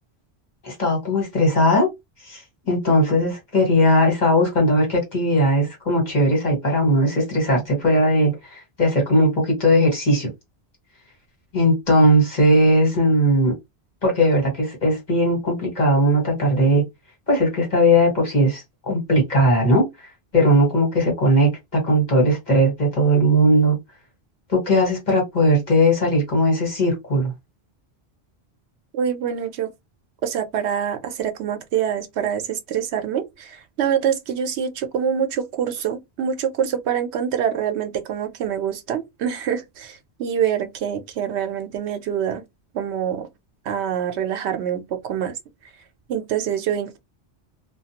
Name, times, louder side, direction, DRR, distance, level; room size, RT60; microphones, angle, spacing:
voice 1, 0.6-1.9 2.2-10.3 11.5-13.5 14.0-16.8 17.3-19.8 20.3-23.8 24.5-27.3, equal, 45° left, 1.4 m, -18 dB
voice 2, 28.9-29.7 30.2-42.4 42.7-43.3 43.6-45.3 46.1-47.0, right 8 dB, 80° right, 0.9 m, -25 dB
2.4 x 2.2 x 2.8 m
omnidirectional pair, 1.1 m